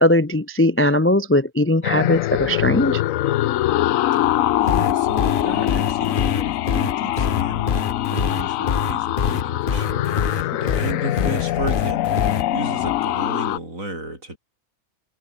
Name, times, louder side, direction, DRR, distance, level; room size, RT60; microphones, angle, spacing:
voice 1, 0.0-3.0, left 1 dB, 20° left, 0.3 m, -19 dB
sound 1, 1.8-13.6, left 14 dB, 75° left, 1.0 m, -23 dB
voice 2, 4.1-14.4, right 1 dB, 70° right, 7.9 m, -34 dB
sound 2, 4.7-12.4, left 6 dB, 40° left, 1.1 m, -24 dB
omnidirectional pair, 1.5 m